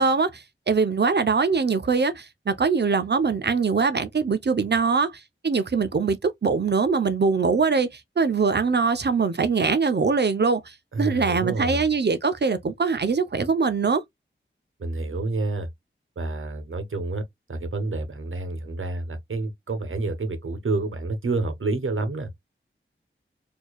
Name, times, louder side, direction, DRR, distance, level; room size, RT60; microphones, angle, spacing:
voice 1, 0.0-14.0, right 4 dB, 55° right, 0.7 m, -23 dB
voice 2, 10.9-11.8 14.8-15.7 16.2-22.4, right 2 dB, 75° right, 1.1 m, -29 dB
4.5 x 2.8 x 2.3 m
wide cardioid pair, 75°, 21 cm